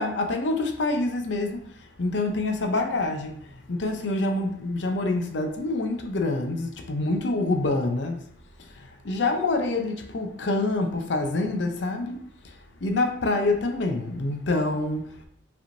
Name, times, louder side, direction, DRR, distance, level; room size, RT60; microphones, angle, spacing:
voice 1, 0.0-8.2 8.7-12.2 12.4-12.5 12.8-15.2, left 2 dB, 70° left, 0.6 m, -26 dB
4.9 x 3.5 x 2.6 m
head